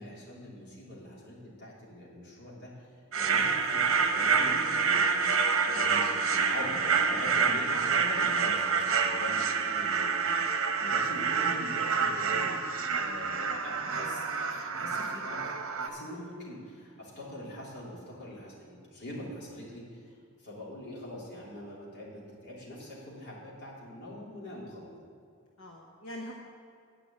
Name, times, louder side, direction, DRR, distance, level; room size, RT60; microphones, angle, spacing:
voice 1, 0.0-3.8 4.1-5.2 5.6-24.9, left 1 dB, 55° left, -6 dB, 3.2 m, -43 dB
sound 1, 3.1-15.9, right 5 dB, 70° right, 0.8 m, -28 dB
voice 2, 25.6-26.3, left 1 dB, 90° left, -1 dB, 1.1 m, -44 dB
9.8 x 5.9 x 8.6 m, 2.4 s
head